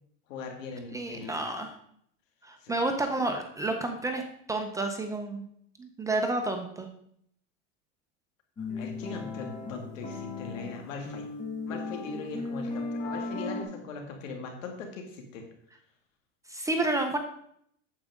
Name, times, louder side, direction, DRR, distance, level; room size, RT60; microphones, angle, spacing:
voice 1, 0.3-1.4 2.6-2.7 8.6-11.2 11.7-15.4, left 4 dB, 80° left, 3 dB, 2.3 m, -40 dB
voice 2, 0.9-1.7 2.4-4.2 4.5-5.4 5.8-6.9 16.5-17.2, right 2 dB, 10° right, 4 dB, 0.5 m, -30 dB
sound 1, 8.6-13.6, left 3 dB, 20° left, 1.4 m, -36 dB
8.9 x 7.3 x 3.6 m, 0.69 s
supercardioid pair, 145°, 38 cm